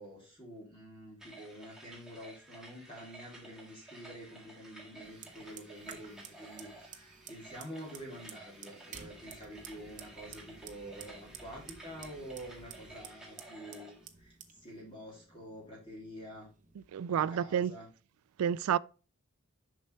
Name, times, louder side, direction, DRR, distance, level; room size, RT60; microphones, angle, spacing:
voice 1, 0.0-16.5 17.1-17.9, equal, 25° left, 2.8 m, -48 dB
sound 1, 1.2-14.1, right 2 dB, ahead, 1.7 m, -53 dB
Fire, 5.0-16.9, right 7 dB, 35° right, 0.8 m, -53 dB
sound 2, 5.2-14.3, left 1 dB, 50° left, 3.5 m, -65 dB
voice 2, 16.9-17.7 18.4-18.8, right 8 dB, 70° right, 0.3 m, -29 dB
7.2 x 5.5 x 3.3 m
head